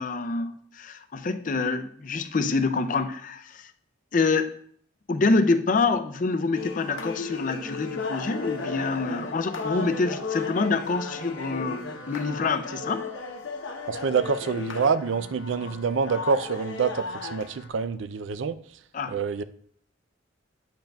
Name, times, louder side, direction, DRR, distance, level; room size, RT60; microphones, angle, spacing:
voice 1, 0.0-3.7 4.1-4.5 5.1-13.1 18.9-19.2, left 3 dB, 40° left, 0.4 m, -26 dB
sound 1, 6.5-17.7, left 3 dB, 90° left, 1.0 m, -35 dB
voice 2, 13.9-18.6 19.1-19.4, right 5 dB, 75° right, 0.4 m, -26 dB
8.8 x 7.7 x 2.3 m
head